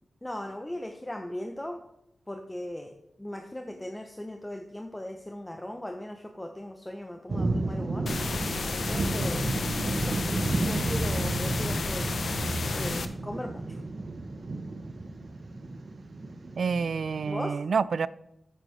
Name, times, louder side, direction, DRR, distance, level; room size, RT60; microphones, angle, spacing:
voice 1, 0.2-1.8 2.3-8.1 8.7-9.6 9.9-10.2 10.6-12.1 12.7-13.8 17.2-17.6, left 1 dB, 10° left, 4 dB, 0.7 m, -38 dB
sound 1, 7.3-17.3, right 2 dB, 45° right, 0.9 m, -32 dB
sound 2, 8.1-13.1, left 4 dB, 60° left, 0.7 m, -32 dB
voice 2, 16.6-18.1, right 5 dB, 70° right, 18 dB, 0.3 m, -28 dB
10.0 x 9.1 x 3.3 m, 0.82 s
wide cardioid pair, 115°, 0 cm